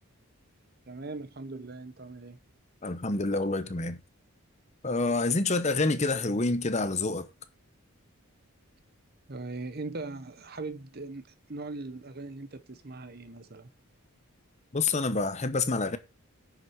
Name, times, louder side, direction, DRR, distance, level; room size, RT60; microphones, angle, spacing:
voice 1, 0.9-2.4 9.3-13.7, right 3 dB, 45° right, 0.9 m, -40 dB
voice 2, 2.8-4.0 4.8-7.3 14.7-16.0, left 3 dB, 30° left, 0.8 m, -27 dB
10.0 x 6.3 x 4.6 m
head